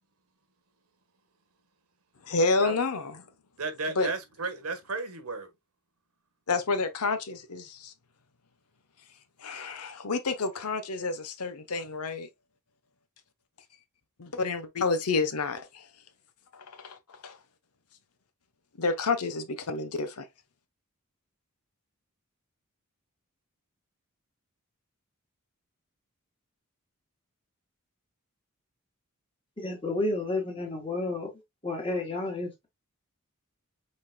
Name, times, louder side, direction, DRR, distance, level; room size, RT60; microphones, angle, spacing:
voice 1, 2.2-3.2 4.0-4.1 6.5-7.9 9.4-12.3 14.2-15.8 16.5-17.0 17.2-17.4 18.8-20.3, left 3 dB, 90° left, 0.9 m, -29 dB
voice 2, 3.6-5.5, right 3 dB, 80° right, 1.3 m, -34 dB
voice 3, 29.6-31.3 31.6-32.7, left 2 dB, 25° left, 1.9 m, -31 dB
5.3 x 4.3 x 2.2 m
head